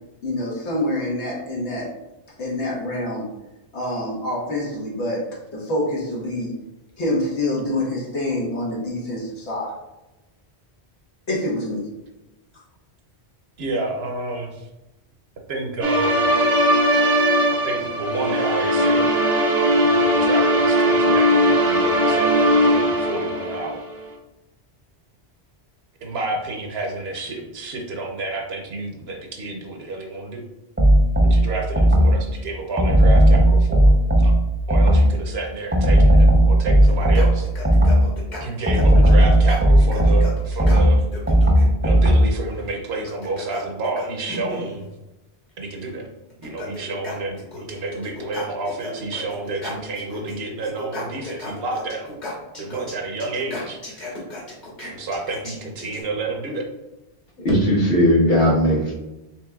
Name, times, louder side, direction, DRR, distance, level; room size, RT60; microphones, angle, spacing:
voice 1, 0.2-1.9 2.4-3.3 3.7-5.2 5.5-6.5 7.0-9.7 11.3-11.8, left 1 dB, 90° left, -5 dB, 1.5 m, -26 dB
voice 2, 13.6-14.5 15.5-16.3 17.6-19.3 19.6-23.8 26.0-30.4 31.3-33.9 34.2-34.3 34.7-37.5 38.4-41.0 41.8-44.9 45.6-46.1 46.4-52.1 52.6-54.2 54.9-56.7, right 3 dB, 70° right, 2 dB, 0.9 m, -30 dB
sound 1, 15.8-23.8, equal, 45° right, 0.7 m, -19 dB
sound 2, 30.8-32.3 32.8-35.2 35.7-38.2 38.7-42.4, right 1 dB, 20° right, 0.4 m, -15 dB
sound 3, 36.9-41.7 42.9-44.8 45.8-45.9 46.3-47.8 48.0-50.4 50.6-56.0, left 2 dB, 45° left, 1.2 m, -35 dB
voice 3, 57.4-58.9, equal, 60° left, -4 dB, 1.3 m, -17 dB
4.5 x 3.5 x 2.3 m, 0.99 s
omnidirectional pair, 1.1 m